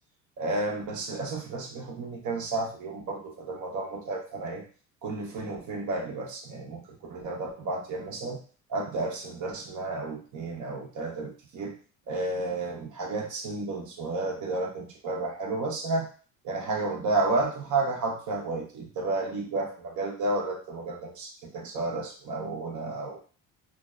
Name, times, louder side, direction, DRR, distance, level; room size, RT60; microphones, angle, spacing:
voice 1, 0.4-4.6 5.0-6.8 7.1-8.4 8.7-11.7 12.1-16.1 16.4-23.2, right 2 dB, 50° right, 0 dB, 0.8 m, -31 dB
2.5 x 2.2 x 2.3 m, 0.39 s
supercardioid pair, 80°, 39 cm